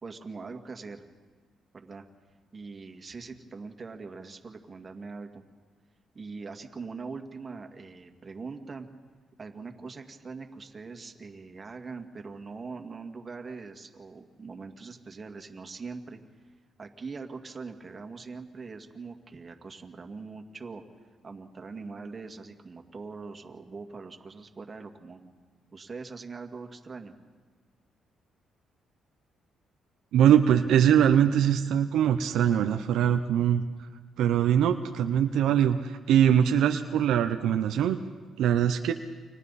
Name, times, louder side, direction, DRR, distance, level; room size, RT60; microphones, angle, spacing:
voice 1, 0.0-1.1 1.7-2.1 2.5-5.4 6.1-8.9 9.4-16.2 16.8-20.8 21.2-25.3 25.7-27.1, right 4 dB, 35° right, 4 dB, 2.2 m, -42 dB
voice 2, 30.1-33.6 34.2-38.0 38.4-38.9, right 9 dB, 80° right, 6 dB, 0.8 m, -22 dB
29.5 x 25.0 x 4.2 m, 1.4 s
cardioid pair, 90°, 0 cm